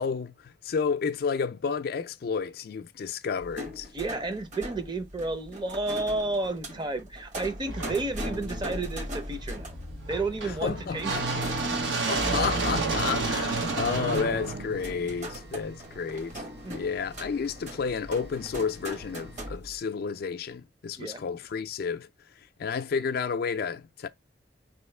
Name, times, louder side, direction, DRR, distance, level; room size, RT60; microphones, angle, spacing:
voice 1, 0.0-3.9 10.4-11.3 12.1-16.4 16.7-22.1 22.6-24.1, left 5 dB, 55° left, 0.4 m, -31 dB
sound 1, 3.4-19.8, equal, 40° right, 1.0 m, -41 dB
voice 2, 3.9-9.7 10.1-11.2 11.7-11.8 16.6-16.8 21.0-21.2, right 2 dB, 25° right, 0.6 m, -31 dB
sound 2, 7.6-15.7, right 3 dB, 85° right, 1.1 m, -31 dB
sound 3, 13.6-19.5, right 1 dB, 70° right, 1.5 m, -51 dB
4.2 x 3.0 x 3.2 m
head